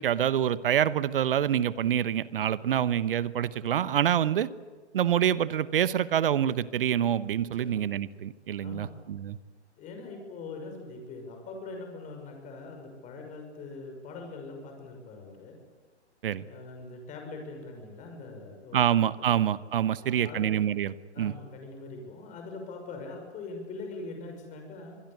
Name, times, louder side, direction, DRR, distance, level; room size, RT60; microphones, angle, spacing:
voice 1, 0.0-4.5 4.9-9.4 16.2-16.4 18.7-21.3, right 10 dB, 50° right, 17 dB, 1.0 m, -26 dB
voice 2, 8.6-8.9 9.8-15.6 16.4-19.3 19.9-20.5 21.1-25.0, left 3 dB, 20° left, 4 dB, 6.1 m, -42 dB
25.5 x 21.0 x 8.3 m, 1.4 s
figure-of-eight pair, 125°, 34 cm